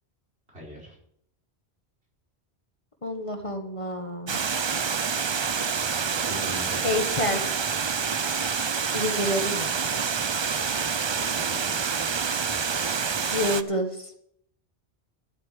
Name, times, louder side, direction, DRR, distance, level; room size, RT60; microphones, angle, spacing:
voice 1, 0.5-1.0 6.0-6.9 10.6-12.7, right 1 dB, 85° right, -3 dB, 5.3 m, -43 dB
voice 2, 3.0-4.4 6.8-7.4 8.9-9.8 13.3-14.1, left 1 dB, 30° left, 5 dB, 1.6 m, -28 dB
Water, 4.3-13.6, right 6 dB, 40° right, 0.4 m, -27 dB
12.5 x 7.9 x 7.5 m, 0.70 s
omnidirectional pair, 1.1 m